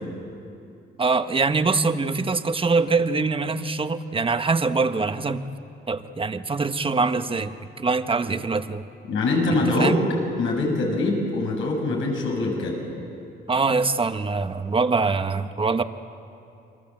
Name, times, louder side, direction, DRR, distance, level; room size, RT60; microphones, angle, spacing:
voice 1, 1.0-5.5 5.9-8.8 9.8-10.0 13.5-15.8, right 4 dB, 25° right, 9 dB, 1.3 m, -23 dB
voice 2, 9.1-10.0 10.4-12.8, left 2 dB, 80° left, 1 dB, 6.5 m, -23 dB
29.0 x 24.0 x 7.6 m, 2.7 s
cardioid pair, 90°, 20 cm